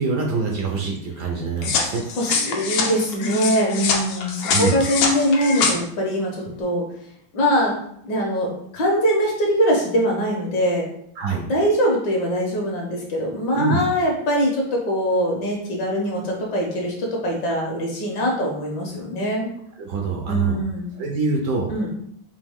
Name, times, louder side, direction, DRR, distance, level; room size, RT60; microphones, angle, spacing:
voice 1, 0.0-2.0 4.5-4.8 11.2-11.4 13.6-13.8 19.8-20.6 20.9-21.7, right 4 dB, 65° right, 0 dB, 1.1 m, -24 dB
sound 1, 1.6-5.7, left 5 dB, 90° left, 1.6 m, -24 dB
voice 2, 2.2-6.8 7.3-7.7 8.0-10.9 11.5-19.5 20.3-20.9 21.7-21.9, equal, 60° left, 0 dB, 1.5 m, -22 dB
5.2 x 2.8 x 3.5 m, 0.71 s
omnidirectional pair, 2.2 m